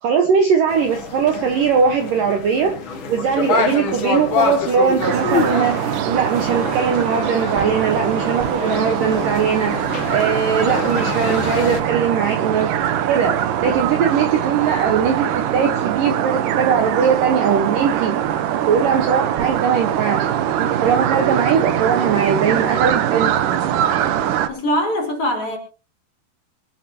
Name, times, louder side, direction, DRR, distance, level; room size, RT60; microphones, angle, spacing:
voice 1, 0.0-2.8 3.1-12.7 13.1-18.2 18.7-20.3 20.6-23.3, right 6 dB, 65° right, 2.4 m, -20 dB
sound 1, 0.7-11.8, left 5 dB, 55° left, 1.3 m, -26 dB
sound 2, 5.0-24.5, right 10 dB, 85° right, 1.8 m, -22 dB
voice 2, 24.5-25.6, equal, 30° left, 4.5 m, -22 dB
25.0 x 11.0 x 2.9 m
omnidirectional pair, 5.3 m